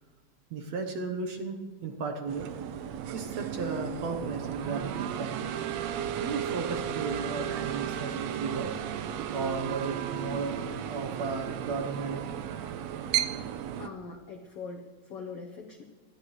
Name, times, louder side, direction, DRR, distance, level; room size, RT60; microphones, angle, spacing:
voice 1, 0.5-2.5 3.1-4.9 5.2-5.4 6.2-8.8 9.3-12.4, right 4 dB, 65° right, 4 dB, 2.0 m, -35 dB
sound 1, 2.3-13.9, right 9 dB, 80° right, 1.5 m, -34 dB
voice 2, 13.8-15.8, left 4 dB, 70° left, 2 dB, 1.3 m, -42 dB
19.5 x 14.0 x 3.2 m, 1.3 s
omnidirectional pair, 3.9 m